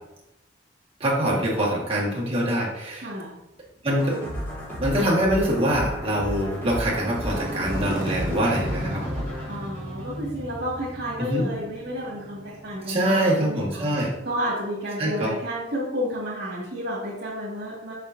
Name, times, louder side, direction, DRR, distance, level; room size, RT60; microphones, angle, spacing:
voice 1, 1.0-3.1 3.8-4.2 4.8-9.3 11.2-11.5 12.9-14.1 15.0-15.3, right 1 dB, 30° right, -5 dB, 1.9 m, -24 dB
voice 2, 3.0-3.3 9.5-13.9 14.2-17.9, equal, 65° right, -7 dB, 2.2 m, -31 dB
Motorcycle, 3.7-13.6, equal, 50° right, 1.2 m, -36 dB
sound 1, 4.0-10.7, equal, 10° left, 2.3 m, -33 dB
7.0 x 6.4 x 2.8 m, 0.91 s
head